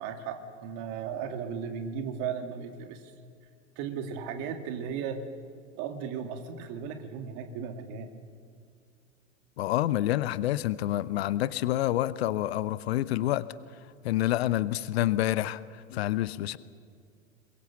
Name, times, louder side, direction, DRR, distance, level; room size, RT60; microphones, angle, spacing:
voice 1, 0.0-3.1 3.8-5.3 5.8-8.1, right 7 dB, 45° right, 6 dB, 2.5 m, -36 dB
voice 2, 9.6-13.5 14.0-16.6, left 14 dB, 55° left, 17 dB, 0.8 m, -28 dB
23.5 x 21.5 x 7.1 m, 2.2 s
figure-of-eight pair, 85°, 37 cm